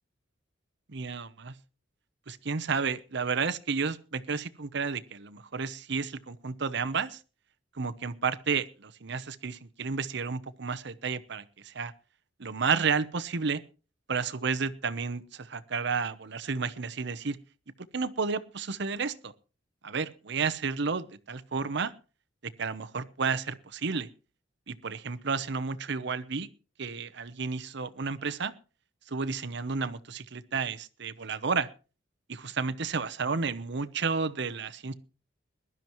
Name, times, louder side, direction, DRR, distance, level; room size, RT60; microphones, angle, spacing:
voice 1, 0.9-1.5 2.3-7.2 7.8-11.9 12.4-13.6 14.1-17.4 17.9-19.3 19.8-21.9 22.4-24.1 24.7-26.5 26.8-28.5 29.1-31.7 32.3-34.9, right 5 dB, 65° right, 14 dB, 0.9 m, -31 dB
21.5 x 12.0 x 3.1 m, 0.36 s
head